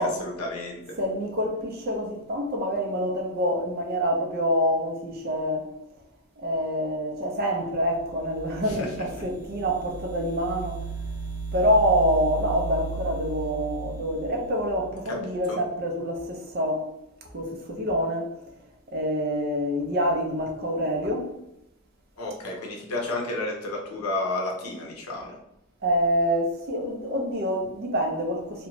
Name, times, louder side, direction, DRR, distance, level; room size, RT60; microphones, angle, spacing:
voice 1, 0.0-1.0 8.7-8.9 15.1-15.6 22.2-25.4, left 2 dB, 80° left, 0.7 m, -32 dB
voice 2, 1.0-5.7 6.4-10.8 11.5-16.9 17.3-18.3 18.9-21.3 25.8-28.7, equal, 45° right, 0.5 m, -26 dB
sound 1, 7.7-15.2, right 4 dB, 80° right, 0.8 m, -36 dB
2.5 x 2.2 x 2.9 m
head